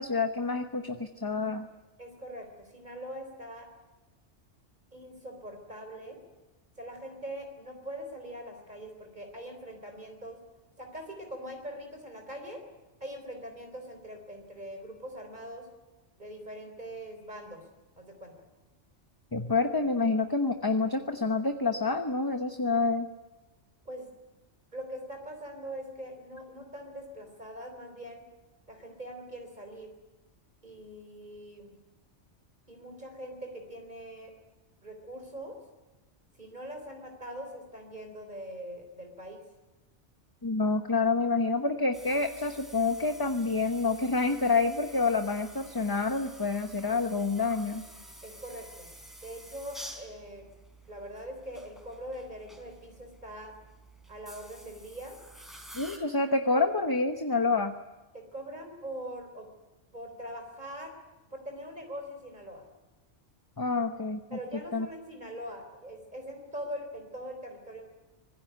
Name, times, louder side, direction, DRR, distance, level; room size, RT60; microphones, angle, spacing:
voice 1, 0.0-1.7 19.3-23.1 40.4-47.8 55.7-57.7 63.6-64.4 64.7-64.9, left 3 dB, 20° left, 7 dB, 1.0 m, -28 dB
voice 2, 2.0-3.7 4.9-6.2 6.8-10.4 10.8-12.6 13.0-15.7 16.2-17.6 18.0-18.5 23.9-24.1 24.7-28.2 28.7-29.9 30.6-31.7 32.7-34.3 34.8-35.6 36.4-39.4 48.2-48.9 49.2-50.5 50.9-53.5 54.1-55.2 58.1-59.5 59.9-60.9 61.3-62.6 64.3-67.8, equal, 40° right, 3 dB, 4.0 m, -42 dB
sound 1, 41.9-56.0, right 1 dB, ahead, 4.1 m, -50 dB
25.0 x 20.0 x 9.5 m, 1.1 s
omnidirectional pair, 1.2 m